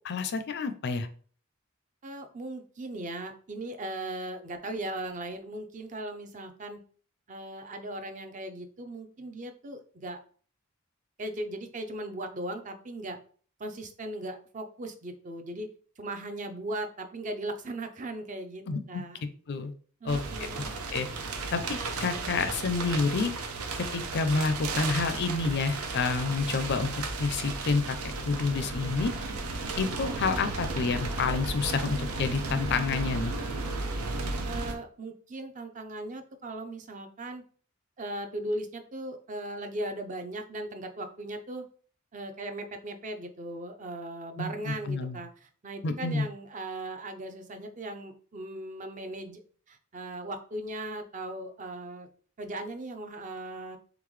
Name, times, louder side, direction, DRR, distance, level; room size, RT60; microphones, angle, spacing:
voice 1, 0.0-1.1 18.7-19.0 19.5-19.7 20.0-20.2 20.9-21.1 21.5-23.3 23.8-29.1 29.8-33.3 44.4-45.2 45.8-46.2, left 4 dB, 50° left, 10 dB, 0.4 m, -29 dB
voice 2, 2.0-6.8 7.3-10.2 11.2-13.2 13.6-15.7 16.0-19.2 20.0-20.8 34.4-37.4 38.0-41.6 42.1-49.4 49.7-52.1 52.4-53.8, right 1 dB, 35° right, 7 dB, 0.5 m, -38 dB
sound 1, 20.1-34.7, right 3 dB, 85° right, 0.7 m, -34 dB
3.8 x 3.5 x 3.1 m, 0.44 s
head